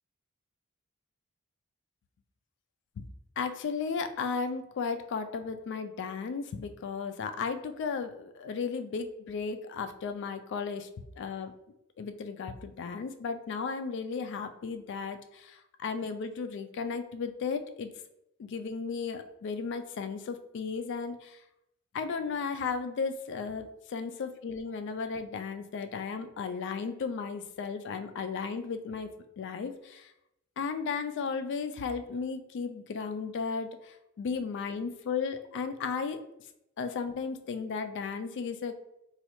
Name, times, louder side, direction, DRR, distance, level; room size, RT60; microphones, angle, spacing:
voice 1, 3.4-10.9 11.2-11.5 12.0-17.9 18.4-21.4 21.9-29.1 29.4-30.1 30.6-36.2 36.8-38.7, left 5 dB, 60° left, 9 dB, 0.3 m, -35 dB
4.1 x 2.3 x 3.0 m, 0.85 s
head